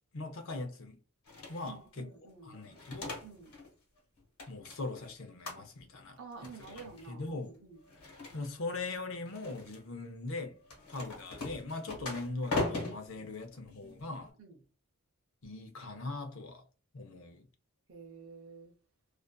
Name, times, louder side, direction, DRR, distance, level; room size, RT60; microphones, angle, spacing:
voice 1, 0.1-1.0 1.5-2.1 2.4-3.2 4.5-6.2 6.7-7.5 8.3-10.6 10.9-14.3 15.4-16.6 16.9-17.5, left 2 dB, 65° left, 0.6 m, -40 dB
sound 1, 1.2-1.8 2.6-3.7 4.0-5.1 5.4-5.9 6.3-7.1 7.8-8.8 9.2-9.8 10.6-14.3, left 2 dB, 80° left, 1.3 m, -40 dB
voice 2, 1.6-2.5 3.2-3.5 6.2-7.8 11.9-12.0 13.2-13.3 14.4-14.6 17.9-18.7, right 5 dB, 65° right, 0.6 m, -50 dB
2.5 x 2.4 x 2.2 m
head